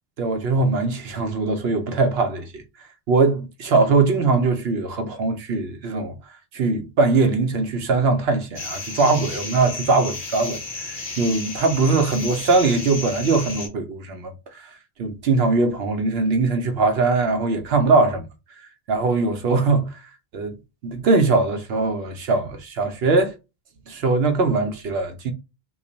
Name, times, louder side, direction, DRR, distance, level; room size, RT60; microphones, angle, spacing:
voice 1, 0.2-2.6 3.1-6.1 6.5-14.7 15.0-18.3 18.9-20.0 20.3-20.5 20.8-23.3 23.9-25.3, right 3 dB, 65° right, 0.8 m, -21 dB
sound 1, 8.6-13.7, left 3 dB, 50° left, 1.2 m, -33 dB
3.1 x 2.2 x 3.9 m
omnidirectional pair, 1.1 m